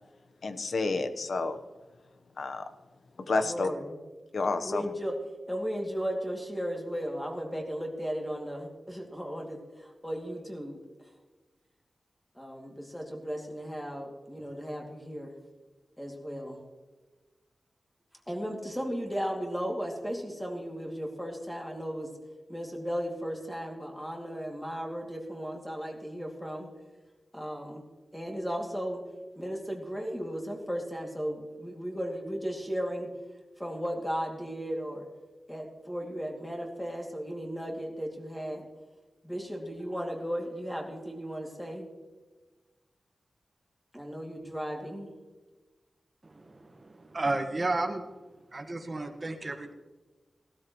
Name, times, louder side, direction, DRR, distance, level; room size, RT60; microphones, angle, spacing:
voice 1, 0.4-1.6 2.4-2.7 3.3-3.7 4.3-4.8, left 3 dB, 65° left, 8 dB, 1.0 m, -29 dB
voice 2, 3.2-4.0 4.6-5.2 5.5-10.8 12.3-15.4 16.0-16.6 18.3-22.1 22.5-26.7 27.3-27.8 28.1-29.0 29.4-33.1 33.6-35.1 35.5-38.7 39.2-41.9 43.9-45.1, equal, 5° left, 1 dB, 2.5 m, -35 dB
voice 3, 46.2-48.1 48.5-49.7, right 2 dB, 35° right, 5 dB, 1.5 m, -33 dB
18.5 x 13.0 x 3.1 m, 1.3 s
wide cardioid pair, 130°, 0 cm